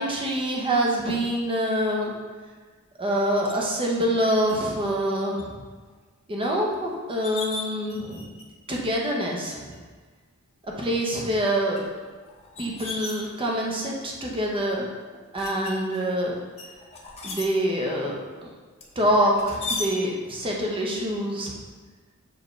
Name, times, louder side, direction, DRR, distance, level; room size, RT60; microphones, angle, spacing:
voice 1, 0.0-2.1 3.0-5.6 6.3-8.2 8.7-9.7 10.8-11.8 12.6-14.9 15.3-16.3 17.2-18.5 19.0-21.5, equal, 25° right, -1 dB, 0.9 m, -25 dB
sound 1, 3.4-3.6 4.5-4.6 5.0-5.4 5.8-5.9 6.7-6.8 7.1-8.4 8.7-9.0 9.7-9.8 10.6-11.0 11.7-13.7 14.3-14.7 15.4-16.1 16.6-17.4 18.8-19.9, left 3 dB, 30° left, 0.8 m, -36 dB
6.2 x 4.7 x 3.2 m, 1.4 s
head